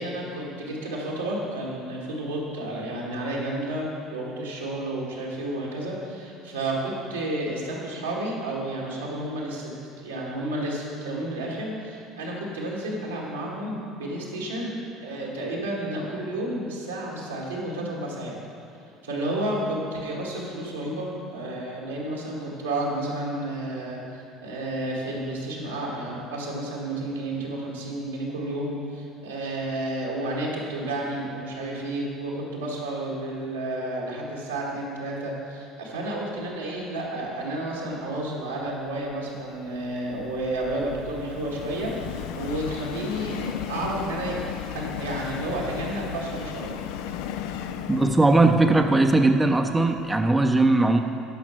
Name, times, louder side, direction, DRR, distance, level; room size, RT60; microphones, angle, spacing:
voice 1, 0.0-9.7 10.0-14.7 15.0-18.3 19.0-44.4 44.7-46.7, right 1 dB, 90° right, -4 dB, 2.0 m, -31 dB
Subway metro underground, 38.9-50.2, left 9 dB, 70° left, 0.4 m, -36 dB
voice 2, 47.9-51.0, right 2 dB, 15° right, 5 dB, 0.7 m, -19 dB
10.0 x 6.0 x 6.3 m, 2.6 s
hypercardioid pair, 65°, 0 cm